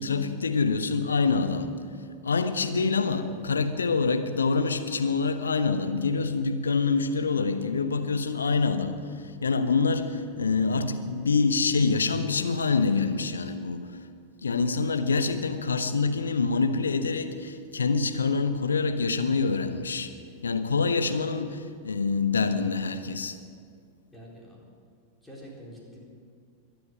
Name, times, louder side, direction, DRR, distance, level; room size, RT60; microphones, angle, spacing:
voice 1, 0.0-1.8 2.2-14.1 14.4-20.1 20.4-23.4, left 4 dB, 70° left, 9 dB, 1.0 m, -26 dB
voice 2, 24.1-24.7 25.2-26.0, equal, 5° left, -4 dB, 4.1 m, -46 dB
23.0 x 8.5 x 6.4 m, 2.2 s
figure-of-eight pair, 90°, 0 cm